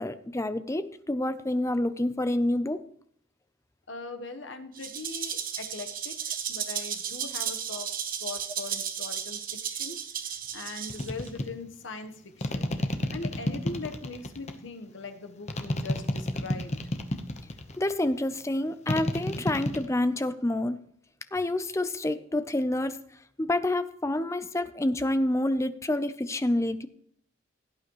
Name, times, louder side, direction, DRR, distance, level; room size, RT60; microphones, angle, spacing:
voice 1, 0.0-2.8 17.8-20.8 21.3-23.0 23.4-26.9, left 1 dB, 15° left, 12 dB, 0.5 m, -28 dB
voice 2, 3.9-10.0 10.5-12.7 13.1-16.8, left 3 dB, 65° left, 7 dB, 1.1 m, -41 dB
Rattle (instrument), 4.8-11.3, right 8 dB, 45° right, 1.1 m, -34 dB
sound 1, 10.9-11.5 12.4-14.6 15.5-17.8 18.9-19.9, left 1 dB, 35° left, 1.0 m, -30 dB
16.5 x 9.0 x 3.1 m, 0.65 s
head